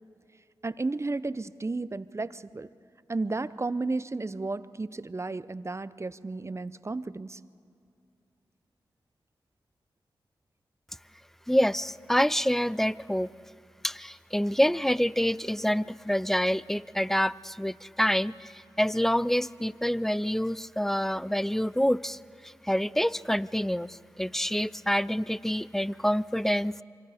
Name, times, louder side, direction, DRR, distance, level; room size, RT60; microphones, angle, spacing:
voice 1, 0.6-2.7 3.1-7.4, right 3 dB, 30° right, 15 dB, 0.7 m, -33 dB
voice 2, 11.5-13.3 13.8-22.2 22.4-26.7, equal, 5° left, 19 dB, 0.5 m, -27 dB
26.0 x 24.5 x 5.0 m, 2.5 s
cardioid pair, 45°, 9 cm